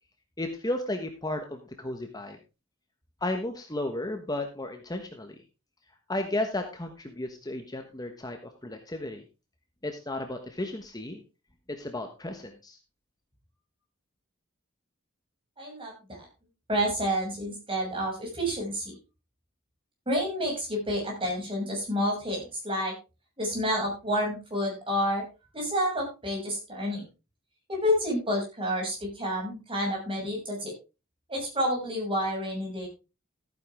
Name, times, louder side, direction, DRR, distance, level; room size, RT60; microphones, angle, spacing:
voice 1, 0.4-2.4 3.2-5.4 6.1-9.2 9.8-11.2 11.7-12.8, left 1 dB, 20° left, 5 dB, 1.2 m, -34 dB
voice 2, 15.6-16.2 16.7-18.9 20.0-22.9 23.4-25.2 25.5-27.0 27.7-30.7 31.3-32.9, equal, 25° right, -1 dB, 6.9 m, -29 dB
14.5 x 9.4 x 3.6 m, 0.29 s
head